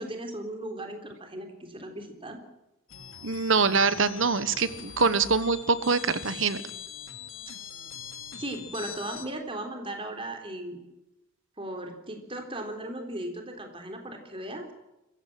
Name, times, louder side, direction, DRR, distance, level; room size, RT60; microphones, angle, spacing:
voice 1, 0.0-2.4 8.4-10.9 11.6-14.7, right 1 dB, 25° right, 5 dB, 3.6 m, -37 dB
sound 1, 2.9-9.3, left 8 dB, 70° left, 2.6 m, -42 dB
voice 2, 3.2-6.6, right 4 dB, 65° right, 14 dB, 1.2 m, -24 dB
26.0 x 15.5 x 7.7 m, 0.93 s
head